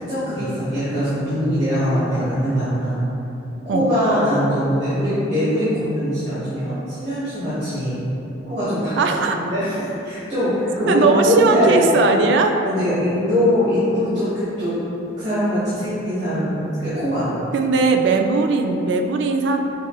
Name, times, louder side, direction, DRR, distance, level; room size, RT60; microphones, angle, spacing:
voice 1, 0.1-3.0 3.6-7.9 8.4-9.7 10.0-12.1 12.6-14.7 15.2-17.2, equal, 35° right, -14 dB, 1.3 m, -21 dB
voice 2, 9.0-9.4 10.9-12.6 17.5-19.6, right 4 dB, 65° right, 4 dB, 0.3 m, -18 dB
6.4 x 3.0 x 2.3 m, 3.0 s
head